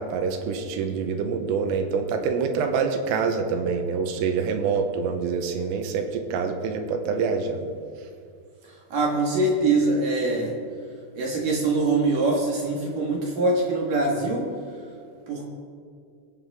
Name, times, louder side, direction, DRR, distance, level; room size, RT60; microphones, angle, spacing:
voice 1, 0.0-7.7, right 5 dB, 85° right, 5 dB, 3.7 m, -26 dB
voice 2, 8.9-10.5 11.2-14.5 15.3-15.4, right 2 dB, 55° right, -1 dB, 2.6 m, -23 dB
22.5 x 10.0 x 3.6 m, 2.3 s
omnidirectional pair, 5.8 m